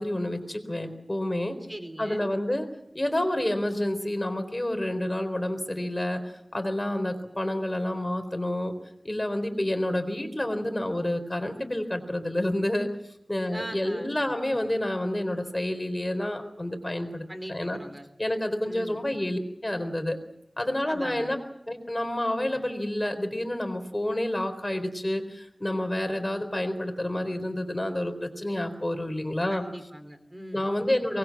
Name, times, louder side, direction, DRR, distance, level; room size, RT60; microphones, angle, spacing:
voice 1, 0.0-1.6 2.0-2.7 2.9-6.2 6.5-8.7 9.0-12.9 13.3-17.2 17.5-17.8 18.2-20.2 20.6-21.4 21.7-29.6 30.5-31.2, left 1 dB, 25° left, 7 dB, 4.1 m, -29 dB
voice 2, 1.7-2.3 13.5-14.1 17.3-18.1 18.6-19.0 20.9-21.4 29.5-30.7, right 1 dB, 20° right, 8 dB, 3.3 m, -40 dB
24.0 x 20.5 x 7.4 m, 0.80 s
wide cardioid pair, 55°, 0 cm